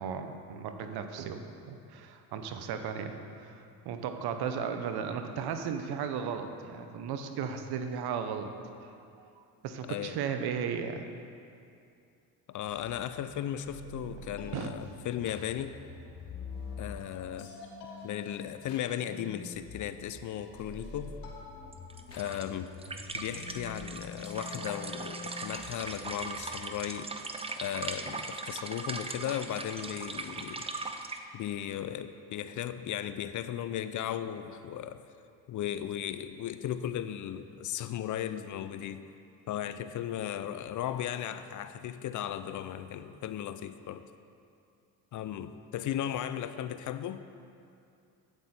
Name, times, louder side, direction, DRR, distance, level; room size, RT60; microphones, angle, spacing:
voice 1, 0.0-8.5 9.2-11.0 13.9-14.0 14.5-14.7, right 7 dB, 70° right, 7 dB, 0.9 m, -36 dB
voice 2, 9.8-10.2 12.5-15.8 16.8-17.5 18.0-21.2 22.2-22.7 23.1-27.1 27.6-30.7 31.3-35.0 35.5-39.1 39.5-44.1 45.1-47.2, left 10 dB, 50° left, 12 dB, 0.5 m, -36 dB
sound 1, 12.7-26.4, left 3 dB, 85° left, 1.4 m, -46 dB
sound 2, 21.7-31.2, right 3 dB, 15° right, 0.5 m, -39 dB
8.4 x 8.0 x 4.3 m, 2.5 s
supercardioid pair, 80°, 40 cm